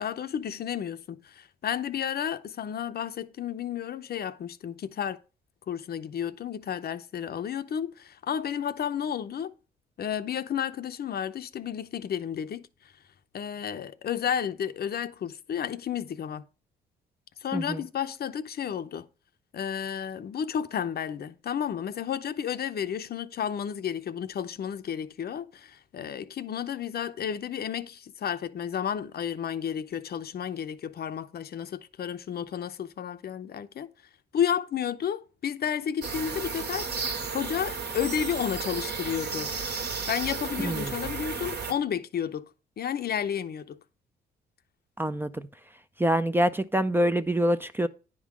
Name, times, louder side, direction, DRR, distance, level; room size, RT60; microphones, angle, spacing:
voice 1, 0.0-5.2 5.7-9.5 10.0-12.7 13.3-16.4 17.4-19.1 19.5-33.9 34.3-36.9 37.3-39.5 40.1-42.4 42.8-43.8, left 8 dB, 55° left, 0.7 m, -32 dB
sound 1, 36.0-41.7, right 5 dB, 55° right, 1.6 m, -33 dB
voice 2, 45.0-45.4 46.0-47.9, equal, 10° right, 0.5 m, -25 dB
10.0 x 3.8 x 6.1 m
cardioid pair, 90°, 20 cm